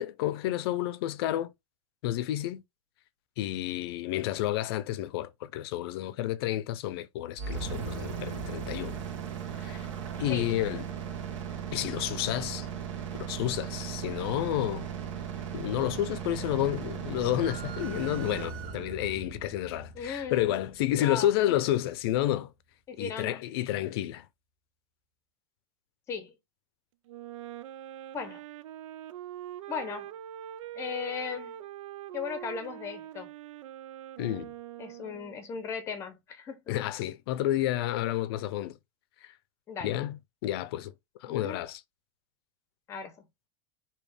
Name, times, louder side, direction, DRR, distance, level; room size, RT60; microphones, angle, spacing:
voice 1, 0.0-1.5 2.0-2.6 3.4-9.0 9.6-9.9 10.2-10.8 11.7-12.7 13.2-14.9 15.5-22.5 23.0-24.3 34.2-34.5 36.7-38.8 39.2-39.3 39.8-40.9 41.2-41.8, left 13 dB, 50° left, 0.6 m, -30 dB
sound 1, 7.4-21.3, right 7 dB, 70° right, 1.6 m, -37 dB
sound 2, 17.4-19.2, right 8 dB, 30° right, 0.6 m, -45 dB
voice 2, 19.9-20.6 21.0-21.6 22.9-23.4 26.1-26.3 28.1-28.4 29.7-30.1 30.7-31.6 32.1-33.3 34.8-36.7 39.7-40.0 41.3-41.6 42.9-43.3, left 6 dB, 15° left, 0.7 m, -37 dB
Wind instrument woodwind instrument, 27.1-35.4, right 12 dB, 85° right, 0.5 m, -43 dB
5.0 x 2.9 x 3.3 m
supercardioid pair, 180°, 16 cm